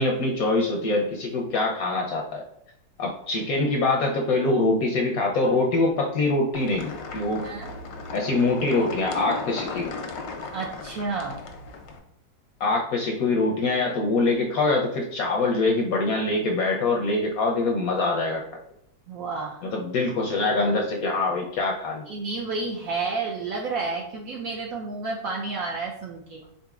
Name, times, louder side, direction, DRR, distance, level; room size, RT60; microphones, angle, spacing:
voice 1, 0.0-2.4 3.0-7.5 8.1-10.0 12.6-18.4 19.6-22.1, left 2 dB, 70° left, 0 dB, 0.9 m, -24 dB
sound 1, 6.5-12.0, left 4 dB, 85° left, 1.4 m, -36 dB
voice 2, 10.5-11.4 19.1-19.7 22.1-26.4, right 3 dB, 75° right, -1 dB, 0.8 m, -31 dB
4.0 x 3.8 x 2.3 m, 0.74 s
omnidirectional pair, 1.9 m